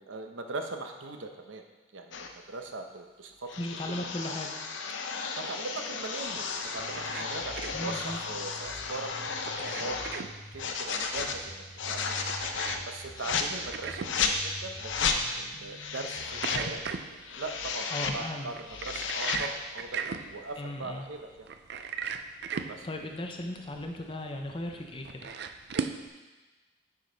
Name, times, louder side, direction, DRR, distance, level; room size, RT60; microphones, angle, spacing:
voice 1, 0.0-1.6 1.9-4.4 5.4-6.5 6.7-9.2 9.4-12.2 12.9-16.8 17.4-21.5 22.7-22.9, right 3 dB, 80° right, 5 dB, 0.7 m, -40 dB
sound 1, 2.1-2.3 3.5-10.2 10.6-11.4 11.8-12.8 13.2-13.5 14.0-14.4 14.8-15.2 15.7-16.7 17.1-18.2 18.5-19.5, left 5 dB, 75° left, 0.6 m, -33 dB
voice 2, 3.6-4.5 7.7-8.2 17.9-18.5 20.6-21.0 22.6-25.3, left 1 dB, 25° left, 3 dB, 0.6 m, -37 dB
sound 2, 6.6-26.1, right 6 dB, 55° right, 0.4 m, -40 dB
sound 3, 6.8-16.8, left 1 dB, 5° left, 1.0 m, -48 dB
9.5 x 5.1 x 3.9 m, 1.2 s
head